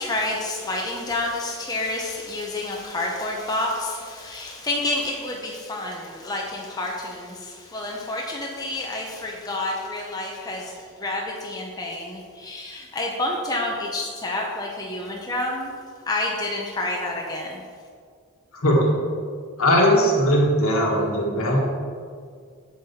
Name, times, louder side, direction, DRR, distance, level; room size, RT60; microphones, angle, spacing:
voice 1, 0.0-15.7 16.1-17.6, left 2 dB, 15° left, -2 dB, 0.7 m, -29 dB
voice 2, 18.5-18.9 19.6-21.6, equal, 70° left, -1 dB, 1.5 m, -19 dB
7.5 x 6.9 x 4.2 m, 2.1 s
head